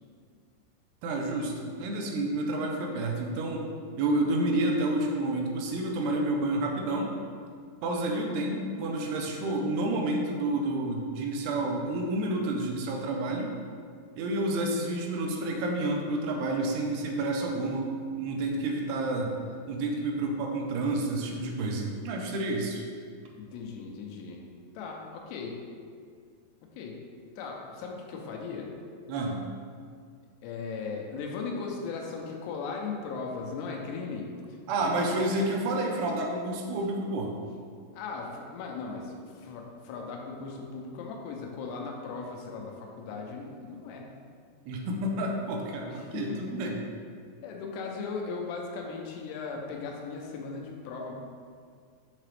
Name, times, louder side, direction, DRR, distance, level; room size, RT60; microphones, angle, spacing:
voice 1, 1.0-3.6 4.0-7.1 7.8-13.5 14.2-19.3 19.7-22.8 29.1-29.4 34.7-37.4 44.7-46.8, right 2 dB, 80° right, 0 dB, 2.6 m, -29 dB
voice 2, 23.4-24.4 24.7-25.6 26.7-27.0 27.4-28.7 30.4-34.3 34.8-35.1 37.9-44.1 45.9-46.4 47.4-51.1, left 4 dB, 90° left, 0 dB, 2.8 m, -37 dB
7.3 x 3.8 x 3.3 m, 2.1 s
omnidirectional pair, 4.8 m